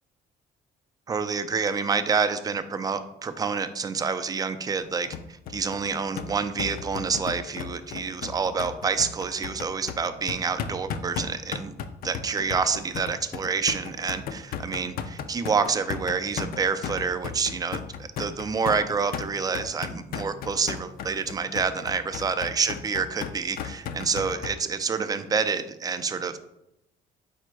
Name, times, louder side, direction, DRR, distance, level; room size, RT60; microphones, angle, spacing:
voice 1, 1.1-11.7 12.0-26.4, right 5 dB, 20° right, 10 dB, 0.3 m, -28 dB
sound 1, 5.1-24.5, left 7 dB, 60° left, 0.4 m, -35 dB
5.0 x 2.2 x 4.5 m, 0.85 s
cardioid pair, 110°, 17 cm